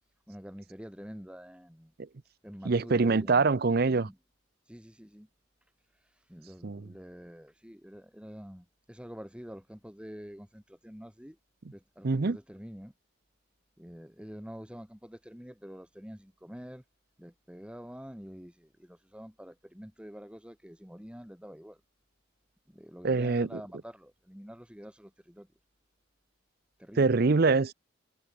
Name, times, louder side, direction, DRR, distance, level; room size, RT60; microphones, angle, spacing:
voice 1, 0.3-1.9 2.4-3.6 3.8-4.2 4.7-5.3 6.3-11.4 11.7-12.9 13.8-16.8 17.2-21.8 22.7-25.5 26.8-27.1, equal, 5° right, 2.0 m, -47 dB
voice 2, 2.6-4.1 6.6-6.9 12.0-12.4 23.0-23.6 27.0-27.7, right 4 dB, 50° right, 0.6 m, -24 dB
head